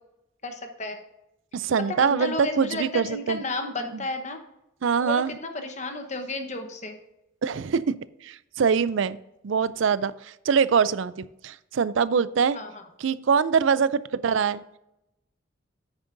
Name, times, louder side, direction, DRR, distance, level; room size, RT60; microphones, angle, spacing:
voice 1, 0.4-1.0 2.0-4.4 5.0-6.9 12.5-12.8, left 2 dB, 35° left, 6 dB, 1.1 m, -32 dB
voice 2, 1.5-3.4 3.9-4.0 4.8-5.4 7.4-7.9 8.2-9.2 9.4-12.6 13.0-14.6, right 6 dB, 70° right, 17 dB, 0.4 m, -24 dB
9.6 x 9.0 x 2.6 m, 0.87 s
head